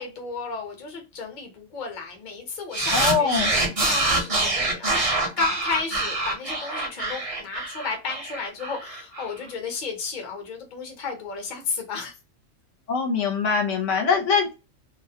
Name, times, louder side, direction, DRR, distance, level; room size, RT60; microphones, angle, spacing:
voice 1, 0.0-5.0 5.4-12.2, left 5 dB, 45° left, 3 dB, 0.7 m, -33 dB
sound 1, 2.7-9.3, right 2 dB, 40° right, 0.6 m, -25 dB
voice 2, 2.9-3.5 12.9-14.5, left 5 dB, 70° left, 3 dB, 0.9 m, -22 dB
2.4 x 2.0 x 2.6 m, 0.28 s
omnidirectional pair, 1.3 m